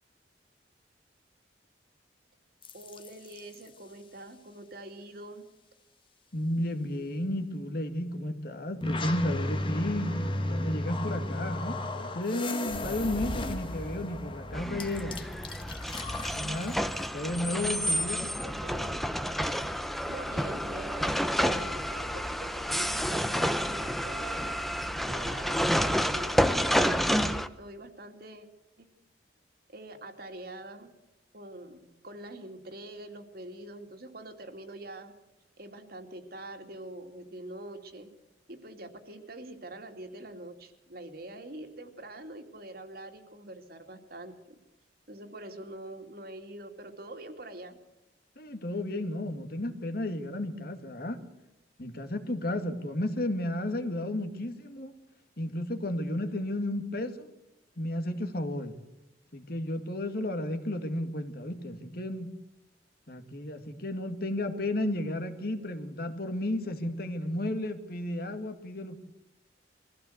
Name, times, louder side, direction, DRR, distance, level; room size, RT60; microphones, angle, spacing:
sound 1, 2.6-3.5 8.8-17.1, left 1 dB, 30° left, 1.5 m, -34 dB
voice 1, 2.7-5.4 17.5-17.9 18.4-19.0 19.8-24.6 25.0-28.5 28.8-28.9 29.7-30.9 31.3-35.1 35.6-38.1 38.5-44.5 45.1-47.8, right 1 dB, 55° right, 5 dB, 2.6 m, -45 dB
voice 2, 6.3-15.2 16.3-16.8 17.1-18.3 48.4-51.2 51.8-54.9 55.4-57.3 57.8-58.8 59.3-62.3 63.1-69.0, left 1 dB, 55° left, 7 dB, 2.1 m, -33 dB
sound 2, 14.5-27.5, equal, ahead, 0.8 m, -29 dB
22.5 x 15.5 x 8.1 m, 0.93 s
head